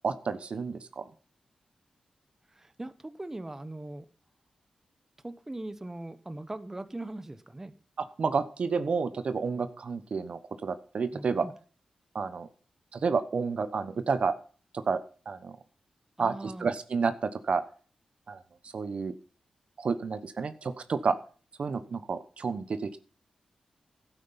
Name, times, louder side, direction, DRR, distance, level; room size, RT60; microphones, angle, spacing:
voice 1, 0.0-1.1 8.2-11.4 12.1-12.5 12.9-14.3 14.9-15.0 15.3-15.6 16.2-17.6 18.3-18.4 18.7-19.1 19.8-21.1 21.6-23.0, right 5 dB, 60° right, 11 dB, 1.0 m, -30 dB
voice 2, 2.5-4.1 5.2-7.7 11.1-11.5 16.2-16.7, right 2 dB, 20° right, 12 dB, 1.2 m, -40 dB
12.0 x 9.2 x 5.8 m, 0.40 s
cardioid pair, 70°, 2 cm